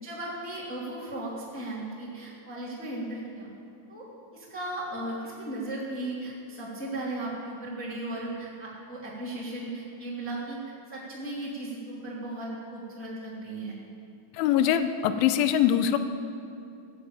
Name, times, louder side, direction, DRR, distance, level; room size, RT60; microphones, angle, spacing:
voice 1, 0.0-3.5 3.9-4.1 4.3-10.6 10.9-13.7, right 1 dB, 15° left, -6 dB, 0.4 m, -36 dB
voice 2, 14.3-16.0, left 10 dB, 85° left, 10 dB, 2.8 m, -23 dB
16.0 x 8.0 x 8.9 m, 2.5 s
omnidirectional pair, 6.0 m